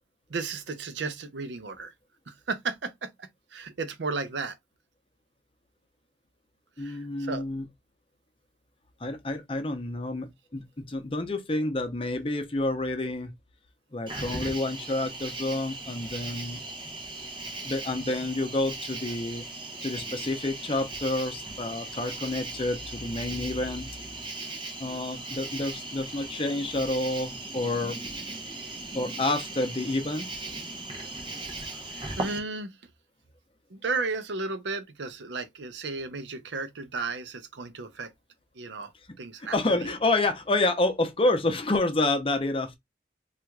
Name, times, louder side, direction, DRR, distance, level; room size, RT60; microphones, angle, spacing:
voice 1, 0.3-1.9 2.3-4.5 6.8-7.5 17.5-17.6 32.2-32.7 33.7-38.1 38.6-38.9 39.2-39.9, right 4 dB, 80° right, 0.6 m, -34 dB
voice 2, 6.8-7.7 9.0-13.3 13.9-16.6 17.6-19.4 19.8-23.9 24.8-28.0 28.9-30.3 39.4-42.8, left 2 dB, 30° left, 0.6 m, -29 dB
Cricket, 14.1-32.4, right 2 dB, 25° right, 0.8 m, -38 dB
4.4 x 2.5 x 2.2 m
head